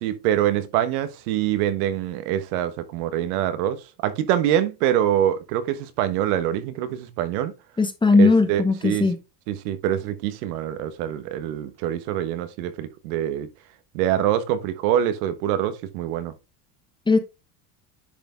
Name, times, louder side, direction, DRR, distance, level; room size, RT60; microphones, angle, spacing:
voice 1, 0.0-7.5 8.2-9.1 9.5-13.5 13.9-16.3, right 11 dB, 80° right, 1.3 m, -25 dB
voice 2, 7.8-9.2 17.1-17.2, left 3 dB, 10° left, 1.1 m, -18 dB
10.0 x 3.5 x 3.7 m
supercardioid pair, 110°, 44 cm